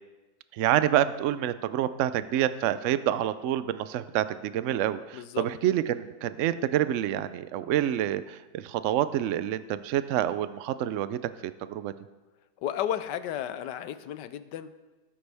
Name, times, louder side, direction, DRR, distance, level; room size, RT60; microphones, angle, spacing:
voice 1, 0.5-11.9, right 11 dB, 80° right, 13 dB, 0.6 m, -27 dB
voice 2, 5.1-5.5 12.6-14.7, left 10 dB, 85° left, 12 dB, 1.3 m, -33 dB
15.0 x 13.0 x 3.4 m, 1.2 s
omnidirectional pair, 1.8 m